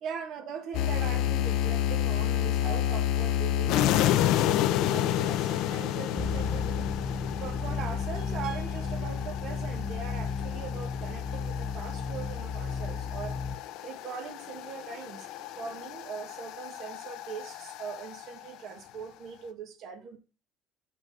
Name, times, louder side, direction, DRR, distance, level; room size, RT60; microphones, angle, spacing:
voice 1, 0.0-6.9 7.3-13.4 13.8-20.2, right 7 dB, 55° right, 1.7 m, -41 dB
sound 1, 0.7-18.5, left 12 dB, 65° left, 0.7 m, -30 dB
sound 2, 6.2-13.6, left 5 dB, 15° left, 0.7 m, -33 dB
8.4 x 4.1 x 6.9 m
cardioid pair, 155°, 0 cm